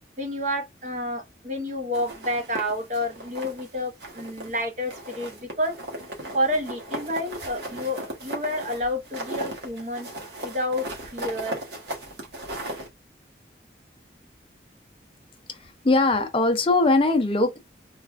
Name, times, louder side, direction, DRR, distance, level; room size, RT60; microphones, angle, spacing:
voice 1, 0.2-5.7 6.3-10.1 10.4-11.6, left 1 dB, 40° right, 0.9 m, -29 dB
sound 1, 1.9-3.7 4.0-4.6 4.9-12.9, right 1 dB, 75° right, 1.2 m, -36 dB
voice 2, 15.5-17.6, left 2 dB, 30° left, 0.4 m, -21 dB
3.2 x 2.4 x 2.4 m
head